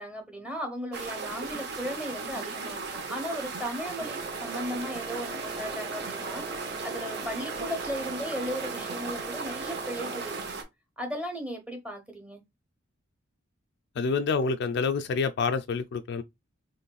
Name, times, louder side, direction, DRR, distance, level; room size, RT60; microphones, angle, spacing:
voice 1, 0.0-10.6 11.0-12.4, equal, 5° right, 1.0 m, -36 dB
sound 1, 0.9-10.6, right 4 dB, 55° right, 0.8 m, -36 dB
Wind instrument woodwind instrument, 4.0-10.6, right 3 dB, 20° right, 0.4 m, -42 dB
voice 2, 14.0-16.2, left 5 dB, 55° left, 0.3 m, -27 dB
4.0 x 3.1 x 2.3 m
head